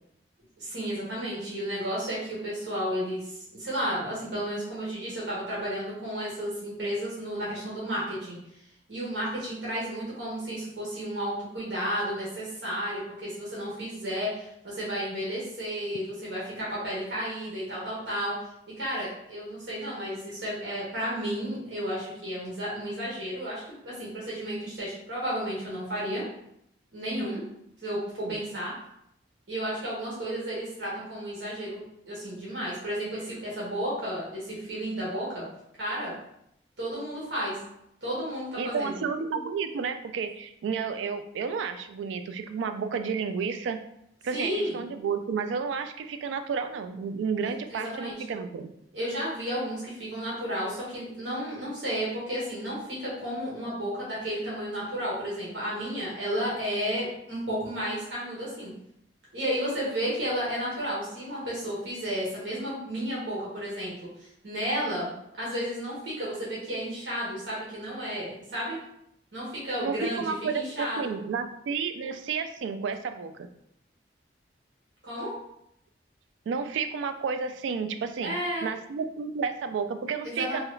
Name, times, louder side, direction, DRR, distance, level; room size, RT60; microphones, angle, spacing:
voice 1, 0.6-8.4 8.9-18.4 18.8-26.2 26.9-27.4 27.8-28.7 29.5-35.4 35.8-36.1 36.8-37.6 38.0-39.0 44.3-44.8 47.4-48.2 48.9-58.7 59.3-65.1 65.4-68.8 69.3-71.1 75.0-75.3 78.2-78.7 80.2-80.6, equal, 75° right, -7 dB, 1.1 m, -32 dB
voice 2, 38.6-43.8 44.2-48.7 69.8-73.5 76.5-78.3 78.6-80.6, right 5 dB, 90° right, 8 dB, 0.3 m, -31 dB
2.8 x 2.4 x 3.1 m, 0.76 s
head